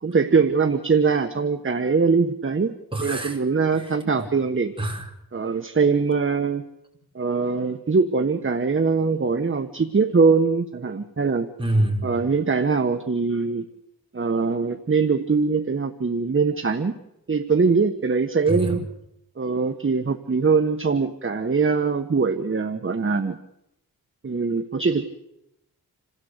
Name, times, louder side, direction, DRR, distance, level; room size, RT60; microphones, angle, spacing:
voice 1, 0.0-4.7 5.3-6.6 7.1-11.5 12.0-13.6 14.1-16.9 17.3-18.8 19.4-23.4 24.2-25.1, right 4 dB, 35° right, 7 dB, 1.3 m, -22 dB
voice 2, 2.9-3.4 4.2-4.3 4.8-5.1 11.6-12.0 18.5-18.8, right 1 dB, 15° right, 0 dB, 5.4 m, -25 dB
28.0 x 16.5 x 8.1 m, 0.84 s
wide cardioid pair, 95°, 36 cm